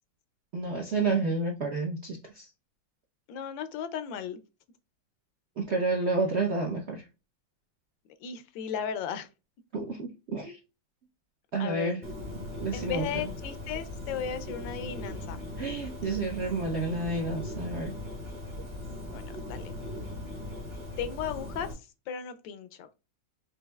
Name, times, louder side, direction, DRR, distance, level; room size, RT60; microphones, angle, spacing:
voice 1, 0.5-2.5 5.6-7.0 9.7-10.6 11.5-12.0 12.6-13.3 15.6-17.9, right 3 dB, 65° right, 0.6 m, -30 dB
voice 2, 3.3-4.4 8.2-9.3 11.6-12.0 12.7-15.4 19.1-19.7 21.0-21.7 22.1-22.9, left 8 dB, 80° left, 1.3 m, -35 dB
Bird, 12.0-21.7, left 1 dB, 25° right, 0.7 m, -39 dB
5.4 x 2.6 x 2.2 m
omnidirectional pair, 2.1 m